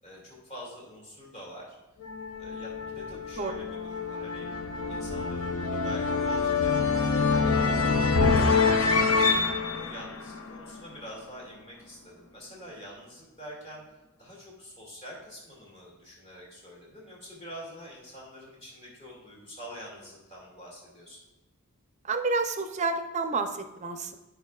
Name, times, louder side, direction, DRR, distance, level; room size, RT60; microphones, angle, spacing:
voice 1, 0.0-1.8 2.4-4.5 4.9-13.9 14.2-21.2, equal, 30° left, -4 dB, 2.3 m, -46 dB
sound 1, 2.0-11.0, left 4 dB, 65° left, 0.7 m, -26 dB
voice 2, 22.0-24.2, right 3 dB, 30° right, 7 dB, 0.5 m, -29 dB
14.0 x 5.5 x 2.3 m, 1.0 s
head